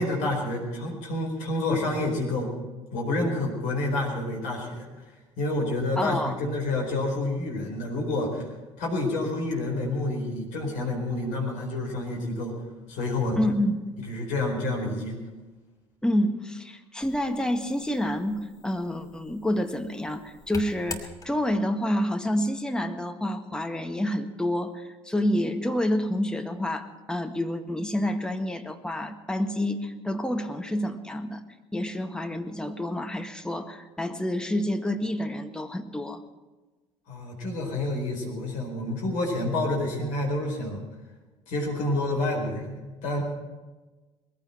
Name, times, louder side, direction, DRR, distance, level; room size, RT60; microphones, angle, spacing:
voice 1, 0.0-2.5 2.9-4.9 5.4-8.5 8.8-12.5 12.9-13.4 14.0-15.1 37.1-40.8 41.5-43.2, left 2 dB, 60° left, -1 dB, 4.5 m, -28 dB
voice 2, 6.0-6.4 13.4-13.8 16.0-31.4 31.7-36.2, left 1 dB, 5° left, 5 dB, 1.7 m, -28 dB
sound 1, 17.0-21.7, left 3 dB, 25° left, 2.6 m, -44 dB
21.0 x 15.5 x 4.4 m, 1.2 s
figure-of-eight pair, 55°, 15 cm